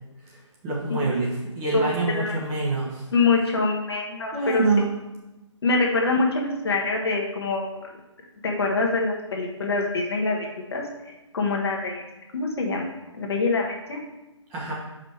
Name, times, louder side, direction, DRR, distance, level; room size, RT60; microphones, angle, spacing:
voice 1, 0.2-3.1 4.3-4.8 14.5-14.7, right 3 dB, 15° right, -4 dB, 1.1 m, -26 dB
voice 2, 1.7-2.3 3.1-4.6 5.6-7.7 8.4-10.8 11.3-12.0 12.3-12.9 13.2-14.0, left 3 dB, 55° left, 0 dB, 1.2 m, -24 dB
5.3 x 5.1 x 4.4 m, 1.0 s
figure-of-eight pair, 145°, 16 cm